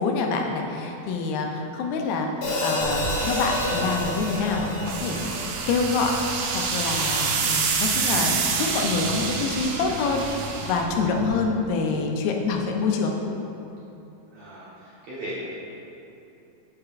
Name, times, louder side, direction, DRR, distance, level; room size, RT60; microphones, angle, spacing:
voice 1, 0.0-2.3 2.6-6.1 6.5-13.1, left 4 dB, 90° left, 2 dB, 2.5 m, -26 dB
Hi-hat, 2.4-6.7, left 1 dB, 65° left, 2.6 m, -30 dB
sound 1, 2.8-11.4, right 5 dB, 85° right, 2.4 m, -28 dB
voice 2, 14.3-15.4, right 1 dB, 60° right, -10 dB, 2.1 m, -37 dB
7.5 x 7.3 x 2.5 m, 2.8 s
omnidirectional pair, 4.2 m